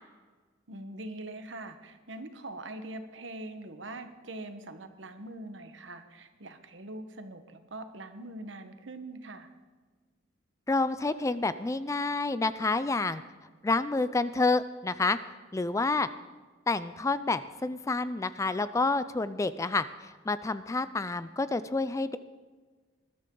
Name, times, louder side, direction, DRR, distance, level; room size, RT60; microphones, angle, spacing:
voice 1, 0.7-9.5, right 2 dB, 70° right, 8 dB, 1.2 m, -43 dB
voice 2, 10.7-13.2 13.6-15.2 15.5-16.1 16.7-22.2, left 3 dB, 15° left, 14 dB, 0.3 m, -29 dB
20.5 x 12.5 x 3.9 m, 1.4 s
head